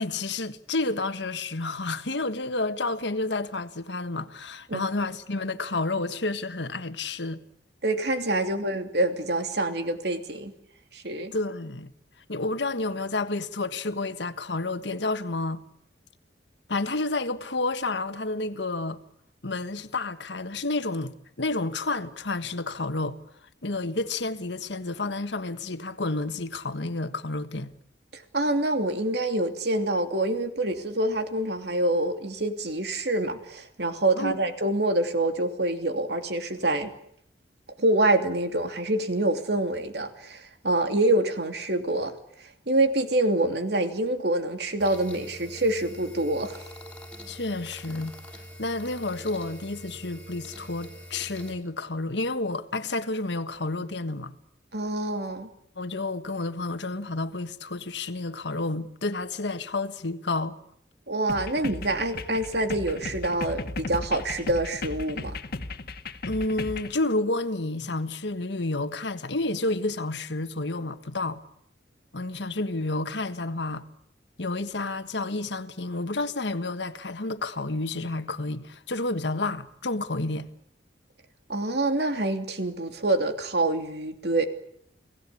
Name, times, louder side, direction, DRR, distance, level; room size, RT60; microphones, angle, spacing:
voice 1, 0.0-7.4 11.3-11.9 12.3-15.6 16.7-19.0 19.4-23.2 23.6-27.7 34.1-34.4 47.3-48.2 48.6-54.3 55.7-60.6 66.3-71.4 72.1-73.9 74.4-80.5, left 2 dB, 75° left, 1.6 m, -30 dB
voice 2, 7.8-10.5 10.9-11.3 28.1-36.9 37.8-42.1 42.7-46.6 54.7-55.5 61.1-65.4 81.5-84.5, right 2 dB, 65° right, 2.9 m, -26 dB
sound 1, 44.8-51.5, equal, 5° left, 5.1 m, -44 dB
sound 2, 61.3-66.9, left 2 dB, 55° left, 1.8 m, -36 dB
30.0 x 18.5 x 8.6 m
head